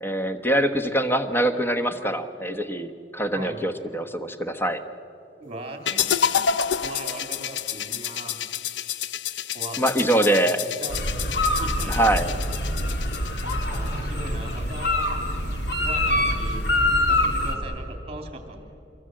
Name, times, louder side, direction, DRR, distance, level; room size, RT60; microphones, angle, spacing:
voice 1, 0.0-4.8 9.8-10.6 11.9-12.3, right 1 dB, 10° left, 8 dB, 1.1 m, -24 dB
voice 2, 5.4-8.4 9.5-9.8 10.1-11.0 11.6-12.2 13.6-15.1 15.8-16.7 17.1-18.6, right 2 dB, 35° right, 4 dB, 2.9 m, -39 dB
sound 1, 5.9-13.9, left 8 dB, 85° left, 0.6 m, -29 dB
sound 2, 10.9-17.6, left 1 dB, 65° left, 2.7 m, -25 dB
26.0 x 23.0 x 7.7 m, 2.8 s
head